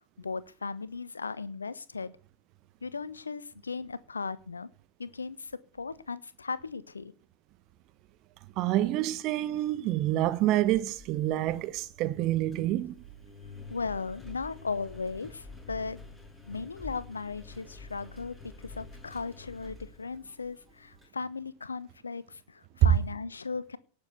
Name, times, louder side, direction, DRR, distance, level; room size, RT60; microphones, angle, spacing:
voice 1, 0.2-2.1 2.8-4.7 5.0-7.1 13.7-16.0 16.5-18.4 18.6-23.8, left 4 dB, 75° left, 1.1 m, -37 dB
voice 2, 8.6-12.9, right 14 dB, 40° right, 1.3 m, -28 dB
Engine, 10.2-21.1, left 3 dB, 10° left, 7.7 m, -49 dB
18.5 x 7.5 x 8.2 m
figure-of-eight pair, 90°, 0 cm